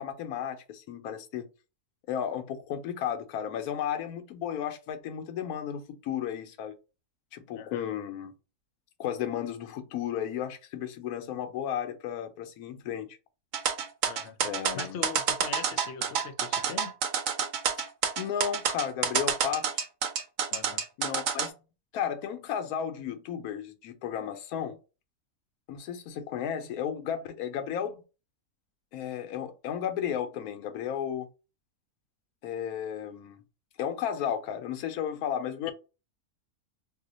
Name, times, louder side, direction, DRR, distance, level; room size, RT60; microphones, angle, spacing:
voice 1, 0.0-1.5 2.1-6.7 7.3-8.3 9.0-13.1 14.4-15.0 18.2-19.8 21.0-21.5 21.9-24.8 25.7-28.0 28.9-31.3 32.4-33.4 33.8-35.7, left 9 dB, 85° left, 1.1 m, -33 dB
sound 1, 13.5-21.5, right 7 dB, 70° right, 0.9 m, -28 dB
voice 2, 14.1-14.4 14.7-16.9 20.5-20.8, left 7 dB, 65° left, 0.7 m, -41 dB
2.8 x 2.1 x 3.8 m
omnidirectional pair, 1.5 m